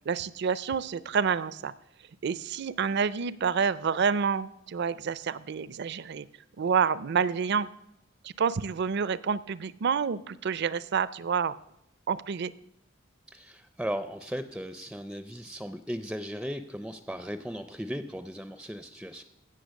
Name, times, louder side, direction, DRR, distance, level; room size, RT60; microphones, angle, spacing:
voice 1, 0.1-1.7 2.2-6.3 6.6-7.7 8.2-11.5 12.1-12.5, right 6 dB, 60° right, 18 dB, 0.5 m, -28 dB
voice 2, 13.3-19.2, equal, 5° right, 11 dB, 0.4 m, -37 dB
16.0 x 6.6 x 6.4 m, 0.82 s
head